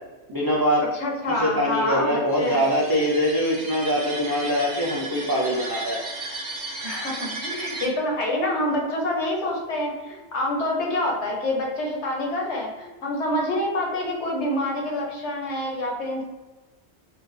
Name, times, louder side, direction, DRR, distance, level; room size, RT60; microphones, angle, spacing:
voice 1, 0.3-0.9 1.4-6.0, equal, 30° right, -5 dB, 0.4 m, -23 dB
voice 2, 0.9-2.7 6.8-16.2, left 1 dB, 85° left, -1 dB, 1.2 m, -27 dB
sound 1, 2.3-7.9, right 2 dB, 80° right, 1.0 m, -35 dB
5.4 x 2.2 x 2.6 m, 1.2 s
omnidirectional pair, 1.1 m